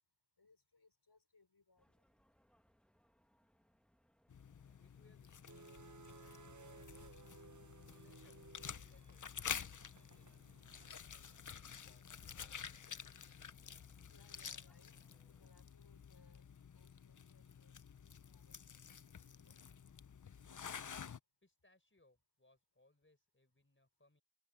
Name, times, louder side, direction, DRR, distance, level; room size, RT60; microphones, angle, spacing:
voice 1, 0.4-1.9 14.1-14.9 15.3-16.4 16.7-17.8 18.1-18.8 19.3-19.6, left 3 dB, 75° left, 5.7 m, -71 dB
sound 1, 1.8-15.5, equal, ahead, 1.9 m, -76 dB
sound 2, 4.3-21.2, left 7 dB, 50° left, 0.6 m, -50 dB
voice 2, 4.8-5.8 6.2-12.8 21.4-24.2, left 2 dB, 30° left, 5.6 m, -74 dB
sound 3, 5.5-11.8, right 4 dB, 45° right, 1.0 m, -60 dB
wide cardioid pair, 50°, 40 cm